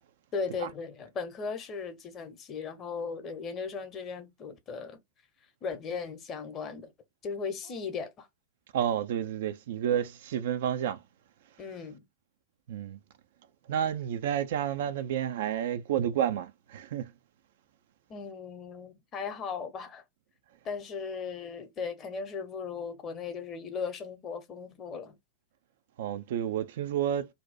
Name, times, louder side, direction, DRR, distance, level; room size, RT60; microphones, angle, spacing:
voice 1, 0.3-5.0 5.6-6.9 7.2-8.3 11.6-12.0 18.1-20.0 20.6-25.2, left 5 dB, 30° left, 0.8 m, -37 dB
voice 2, 8.7-11.0 12.7-13.0 13.7-17.1 26.0-27.3, right 9 dB, 55° right, 0.4 m, -30 dB
2.7 x 2.1 x 4.0 m
figure-of-eight pair, 90°, 0 cm